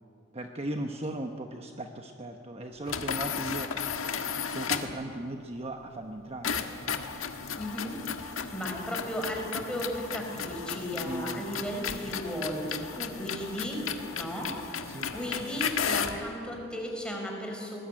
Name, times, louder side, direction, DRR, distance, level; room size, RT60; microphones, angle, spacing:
voice 1, 0.3-4.1 4.5-7.0 11.0-11.4 14.9-15.1, right 1 dB, 30° right, 4 dB, 1.1 m, -38 dB
sound 1, 2.9-5.0 6.4-16.2, left 6 dB, 85° left, 1.6 m, -34 dB
voice 2, 7.6-13.8 14.1-17.8, equal, 5° left, 1 dB, 4.6 m, -35 dB
23.0 x 19.5 x 8.9 m, 2.5 s
head